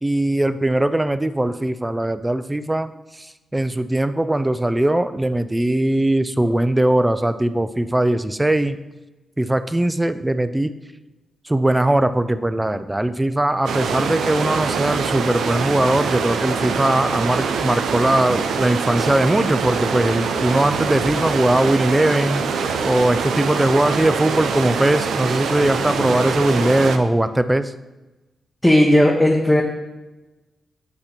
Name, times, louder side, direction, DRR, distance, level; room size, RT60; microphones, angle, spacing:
voice 1, 0.0-2.9 3.2-8.8 9.4-10.7 11.5-22.4 22.8-27.7, right 1 dB, 15° right, 12 dB, 0.4 m, -20 dB
sound 1, 13.7-27.0, right 5 dB, 85° right, 0.5 m, -24 dB
voice 2, 28.6-29.6, left 1 dB, 10° left, -1 dB, 0.9 m, -14 dB
8.2 x 2.9 x 5.0 m, 1.1 s
cardioid pair, 65°, 0 cm